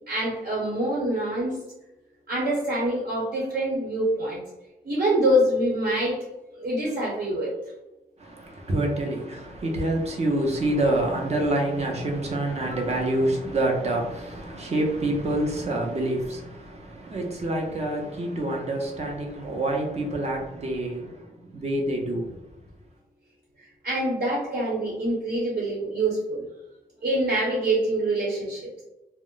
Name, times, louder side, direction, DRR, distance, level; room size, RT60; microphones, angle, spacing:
voice 1, 0.1-1.6 2.3-4.4 4.8-6.2 6.5-7.5 23.6-26.4 27.0-28.7, right 1 dB, 75° right, 1.1 m, -25 dB
voice 2, 8.2-22.4, right 1 dB, 40° right, 0.6 m, -27 dB
2.1 x 2.0 x 3.7 m
wide cardioid pair, 165°, 17 cm